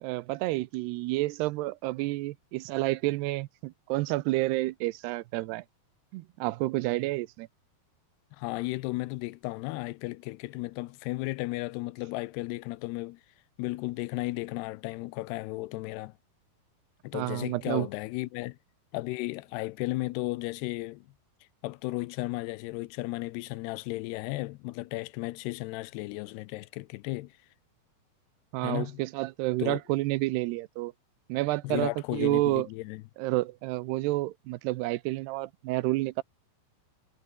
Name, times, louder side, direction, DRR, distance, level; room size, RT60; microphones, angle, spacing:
voice 1, 0.0-5.6 6.1-7.5 17.1-17.9 28.5-30.9 31.3-32.7 33.2-36.2, right 19 dB, 85° right, 2.7 m, -30 dB
voice 2, 8.4-13.2 13.6-16.1 17.0-18.6 18.9-21.1 21.6-27.3 28.6-29.0 29.6-29.8 31.6-33.0, left 20 dB, 80° left, 2.7 m, -34 dB
omnidirectional pair, 4.8 m